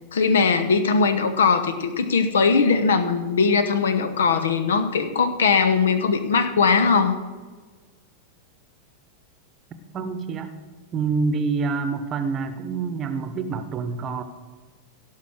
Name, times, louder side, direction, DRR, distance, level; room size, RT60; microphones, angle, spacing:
voice 1, 0.1-7.2, left 5 dB, 65° left, 10 dB, 0.9 m, -20 dB
voice 2, 9.9-10.6 10.9-14.2, right 4 dB, 30° right, 9 dB, 0.9 m, -26 dB
17.0 x 5.6 x 6.3 m, 1.4 s
figure-of-eight pair, 90°, 0 cm